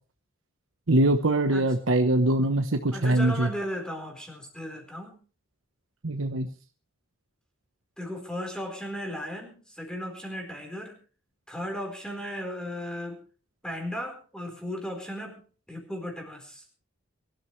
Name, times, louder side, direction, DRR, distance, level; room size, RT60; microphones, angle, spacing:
voice 1, 0.9-3.5 6.0-6.5, right 1 dB, 80° right, 5 dB, 1.1 m, -23 dB
voice 2, 2.9-5.2 8.0-11.0 11.5-13.2 13.6-16.6, equal, 5° left, 3 dB, 4.3 m, -36 dB
23.5 x 13.0 x 3.3 m, 0.39 s
head